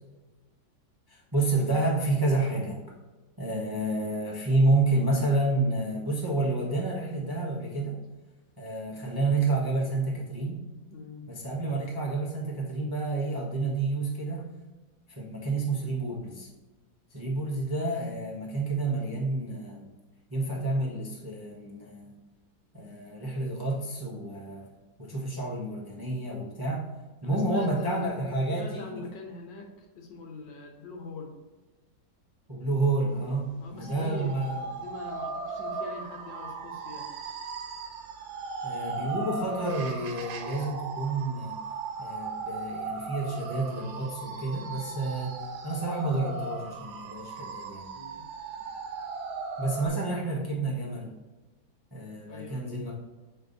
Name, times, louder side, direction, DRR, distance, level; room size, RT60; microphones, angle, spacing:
voice 1, 1.1-2.8 3.4-8.0 8.6-10.6 11.3-14.4 15.1-16.5 17.1-19.9 20.3-22.1 22.7-24.7 25.0-26.9 27.2-29.0 32.5-34.6 38.6-41.6 42.0-47.9 49.6-51.1 51.9-52.9, right 2 dB, 20° right, -4 dB, 0.6 m, -29 dB
voice 2, 10.9-11.3 27.2-28.1 28.5-31.3 33.6-34.4 34.8-37.1 47.9-48.3 52.3-52.8, left 3 dB, 70° left, 2 dB, 1.7 m, -43 dB
sound 1, 33.8-49.9, right 4 dB, 80° right, 1.5 m, -37 dB
5.8 x 4.6 x 3.9 m, 1.2 s
omnidirectional pair, 2.1 m